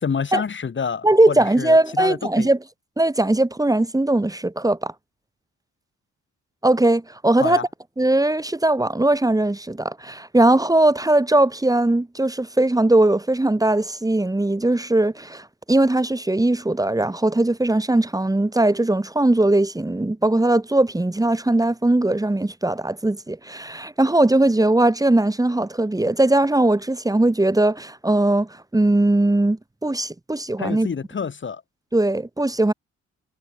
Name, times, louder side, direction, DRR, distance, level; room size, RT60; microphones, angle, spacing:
voice 1, 0.0-2.5 7.4-7.6 30.6-31.6, left 6 dB, 40° left, 3.6 m, -28 dB
voice 2, 1.0-2.6 3.0-4.9 6.6-7.6 8.0-30.9 31.9-32.7, right 2 dB, 10° right, 3.1 m, -19 dB
cardioid pair, 90°, 30 cm